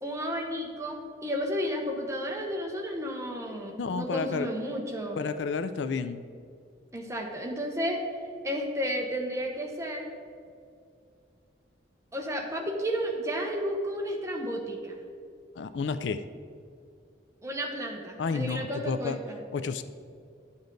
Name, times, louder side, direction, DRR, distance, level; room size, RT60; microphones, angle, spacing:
voice 1, 0.0-5.2 6.9-8.0 8.4-10.1 12.1-15.0 17.4-19.4, equal, 15° right, 1 dB, 0.9 m, -32 dB
voice 2, 3.8-4.5 5.2-6.2 15.6-16.2 18.2-19.2 19.5-19.8, left 5 dB, 80° left, 11 dB, 0.4 m, -31 dB
11.0 x 7.0 x 3.9 m, 2.4 s
head